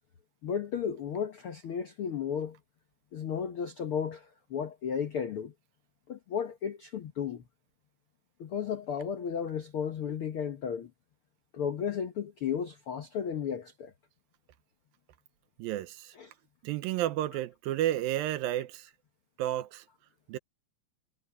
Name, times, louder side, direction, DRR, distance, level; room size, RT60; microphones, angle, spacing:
voice 1, 0.4-2.6 3.1-5.5 6.1-7.4 8.4-10.9 11.5-13.9 16.1-16.3, left 7 dB, 85° left, 1.2 m, -34 dB
voice 2, 15.6-16.1 16.6-18.9 19.4-19.8 20.3-20.4, right 13 dB, 80° right, 2.5 m, -31 dB
omnidirectional pair, 4.3 m